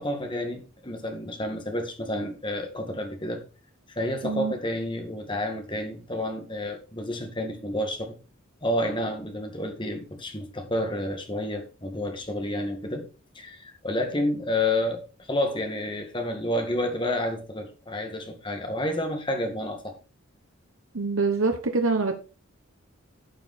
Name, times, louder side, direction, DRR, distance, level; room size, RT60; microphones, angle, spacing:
voice 1, 0.0-3.4 3.9-8.1 8.6-13.1 13.3-19.9, left 1 dB, 25° left, 4 dB, 2.1 m, -30 dB
voice 2, 4.2-4.5 20.9-22.2, right 3 dB, 75° right, 5 dB, 1.2 m, -25 dB
12.0 x 6.9 x 4.4 m, 0.34 s
head